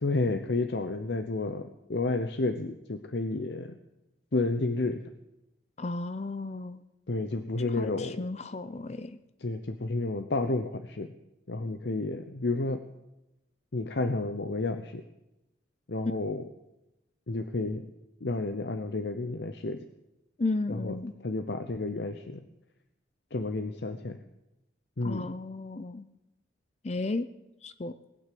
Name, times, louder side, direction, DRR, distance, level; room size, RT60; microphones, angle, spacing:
voice 1, 0.0-3.8 4.3-5.1 7.1-8.2 9.4-11.1 11.5-12.8 13.7-15.0 15.9-16.5 17.3-17.9 18.2-19.8 20.7-20.9 21.2-22.4 23.3-24.2 25.0-25.3, left 2 dB, 75° left, 8 dB, 0.8 m, -31 dB
voice 2, 5.8-6.8 7.8-9.2 16.0-16.2 20.4-21.1 25.0-26.1 26.8-27.3 27.6-27.9, left 2 dB, 40° left, 13 dB, 0.6 m, -33 dB
19.5 x 9.1 x 7.6 m, 0.94 s
head